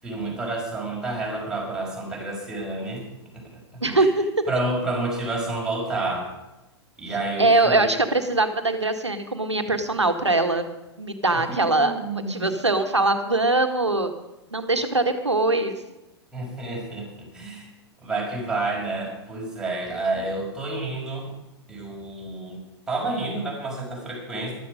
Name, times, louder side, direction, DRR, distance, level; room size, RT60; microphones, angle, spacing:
voice 1, 0.0-3.0 3.3-3.4 4.0-4.1 4.5-6.3 7.0-7.9 11.3-12.5 16.3-17.7 18.0-21.3 21.7-22.6 22.9-24.5, right 2 dB, 5° right, -4 dB, 5.7 m, -29 dB
voice 2, 3.8-4.3 7.4-10.6 11.0-14.1 14.5-15.8, right 2 dB, 80° right, 6 dB, 1.7 m, -22 dB
15.0 x 13.0 x 5.2 m, 1.0 s
figure-of-eight pair, 105°, 15 cm